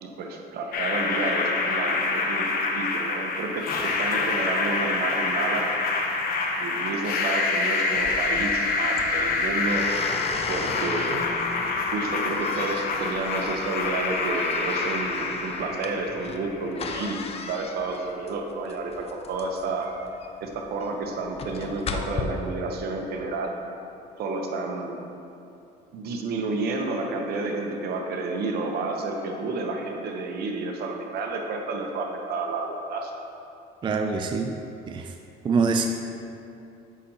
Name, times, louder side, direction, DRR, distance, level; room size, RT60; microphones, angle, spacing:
voice 1, 0.0-5.7 6.6-9.9 10.5-11.2 11.9-19.9 20.4-23.5 24.2-25.0 25.9-33.1, right 3 dB, 70° right, 2 dB, 0.9 m, -30 dB
sound 1, 0.7-16.7, left 3 dB, 60° left, 0.9 m, -27 dB
sound 2, 8.0-22.2, left 5 dB, 35° left, 0.5 m, -36 dB
voice 2, 33.8-34.5 34.9-35.1 35.4-35.9, right 4 dB, 30° right, 5 dB, 0.4 m, -24 dB
8.1 x 5.9 x 2.9 m, 2.7 s
cardioid pair, 110°, 17 cm